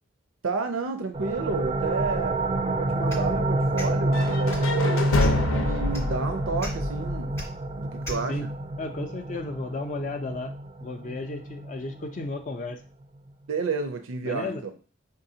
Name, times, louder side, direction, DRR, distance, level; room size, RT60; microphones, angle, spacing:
voice 1, 0.4-5.1 5.4-7.4 7.8-8.5 13.5-14.6, right 4 dB, 85° right, 7 dB, 0.5 m, -31 dB
sound 1, 1.1-12.5, right 2 dB, 25° right, 0.4 m, -28 dB
sound 2, 3.1-3.3 3.7-3.9 4.5-4.7 5.2-5.5 5.9-6.0 6.6-6.7 7.3-7.5 8.0-8.2, left 1 dB, 15° left, 0.7 m, -36 dB
sound 3, 4.1-8.0, left 2 dB, 90° left, 0.7 m, -28 dB
voice 2, 8.8-10.5 10.8-12.8 14.2-14.6, left 3 dB, 40° left, 6 dB, 0.4 m, -33 dB
4.7 x 3.8 x 2.7 m, 0.36 s
head